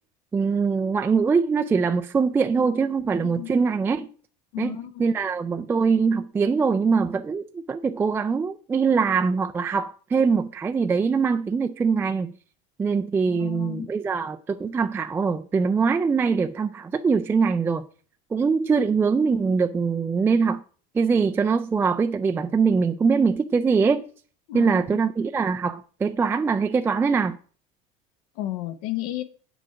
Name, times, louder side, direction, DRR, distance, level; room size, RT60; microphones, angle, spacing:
voice 1, 0.3-4.1 4.6-12.3 12.8-17.9 18.3-20.6 20.9-24.1 24.5-27.4, right 5 dB, 10° right, 0.3 m, -23 dB
voice 2, 3.2-3.5 4.5-4.9 13.3-13.9 24.5-25.0 28.4-29.2, left 15 dB, 75° left, 1.0 m, -32 dB
7.9 x 6.1 x 5.6 m
supercardioid pair, 145°, 18 cm